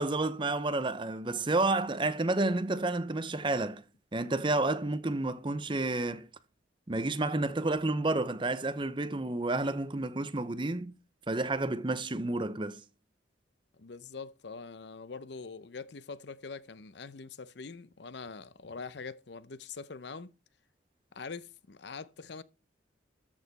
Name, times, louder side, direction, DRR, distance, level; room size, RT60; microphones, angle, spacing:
voice 1, 0.0-3.8 4.1-6.3 6.9-10.9 11.3-12.8, right 2 dB, 25° right, 0.8 m, -30 dB
voice 2, 13.8-20.3 21.1-22.4, left 4 dB, 65° left, 0.7 m, -44 dB
13.5 x 6.5 x 4.1 m
head